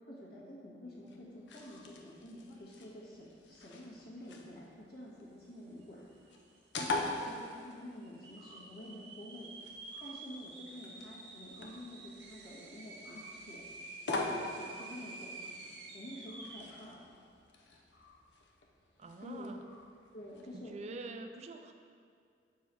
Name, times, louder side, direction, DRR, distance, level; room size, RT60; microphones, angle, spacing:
voice 1, 0.1-6.1 6.8-9.5 10.0-13.7 14.1-15.5 15.9-17.1 19.2-19.6 20.1-20.8, left 1 dB, 65° left, -5 dB, 1.6 m, -49 dB
sound 1, 0.9-20.6, left 2 dB, 85° left, 0.7 m, -45 dB
sound 2, 5.8-5.9 6.1-6.7 7.2-7.3 8.0-16.8, right 3 dB, 85° right, 0.8 m, -49 dB
voice 2, 19.0-19.6 20.5-21.7, right 3 dB, 40° right, 6 dB, 0.3 m, -45 dB
6.8 x 4.6 x 4.6 m, 2.3 s
head